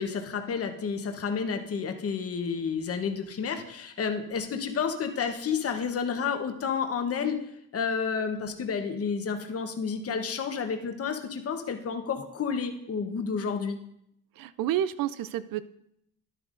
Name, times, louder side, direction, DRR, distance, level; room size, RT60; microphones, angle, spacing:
voice 1, 0.0-7.4 7.7-13.8, left 6 dB, 45° left, 6 dB, 0.9 m, -30 dB
voice 2, 14.4-15.6, right 11 dB, 75° right, 15 dB, 0.5 m, -29 dB
11.0 x 10.0 x 2.5 m, 0.77 s
cardioid pair, 100°, 34 cm